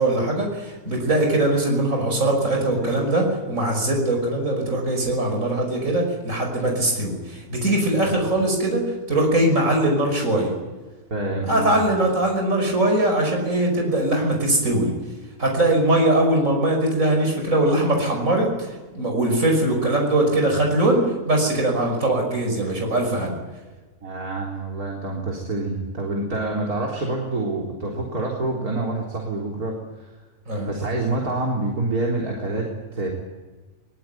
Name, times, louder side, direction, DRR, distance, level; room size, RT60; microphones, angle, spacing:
voice 1, 0.0-8.8 9.1-10.5 11.5-14.9 15.4-23.4 30.5-30.7, right 1 dB, 60° right, 2 dB, 6.1 m, -21 dB
voice 2, 11.1-11.7 24.0-29.8 30.7-33.1, right 2 dB, 85° right, -1 dB, 4.3 m, -27 dB
23.0 x 21.5 x 9.3 m, 1.3 s
omnidirectional pair, 1.5 m